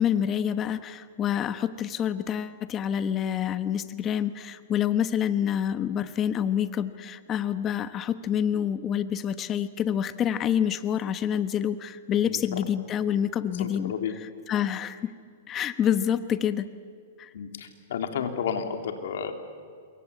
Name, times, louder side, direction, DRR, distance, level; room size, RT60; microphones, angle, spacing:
voice 1, 0.0-13.9 14.5-15.1 15.5-16.7 17.2-17.3, left 9 dB, 25° left, 12 dB, 1.1 m, -27 dB
voice 2, 12.2-12.6 13.5-14.1 17.3-19.3, left 7 dB, 75° left, 6 dB, 3.1 m, -32 dB
27.5 x 23.0 x 8.4 m, 2.2 s
hypercardioid pair, 130°, 0 cm